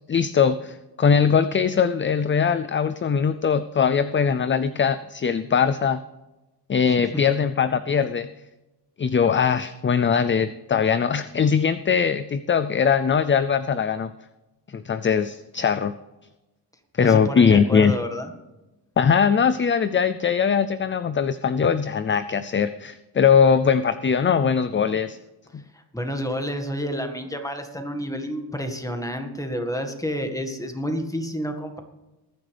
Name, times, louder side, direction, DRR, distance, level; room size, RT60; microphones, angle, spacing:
voice 1, 0.1-6.0 6.7-8.3 9.0-14.1 14.7-15.9 17.0-17.9 19.0-25.2 25.5-25.6, left 6 dB, 30° left, 12 dB, 0.4 m, -21 dB
voice 2, 6.9-7.2 17.0-18.3 25.7-31.8, equal, 10° left, 5 dB, 1.8 m, -29 dB
21.0 x 9.8 x 3.4 m, 1.1 s
wide cardioid pair, 120°, 42 cm